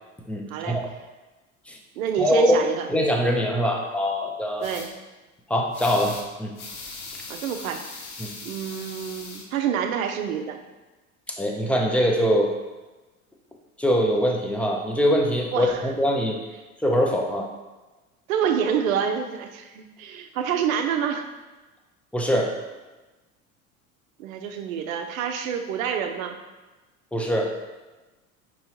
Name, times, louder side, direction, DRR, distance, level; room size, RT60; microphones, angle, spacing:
voice 1, 0.3-0.8 1.7-1.8 2.2-2.6 2.9-4.7 5.5-6.5 8.2-8.3 11.4-12.5 13.8-16.4 16.8-17.5 22.1-22.5 27.1-27.5, equal, 5° left, 1 dB, 0.3 m, -23 dB
voice 2, 2.0-2.9 4.6-4.9 7.3-7.8 8.4-10.6 15.5-15.9 18.3-21.3 24.2-26.4, right 8 dB, 75° right, 6 dB, 0.6 m, -27 dB
sound 1, 4.6-4.9 5.7-6.3 6.6-9.4, left 3 dB, 80° left, 0.8 m, -39 dB
5.4 x 3.0 x 2.8 m, 1.2 s
figure-of-eight pair, 75°, 42 cm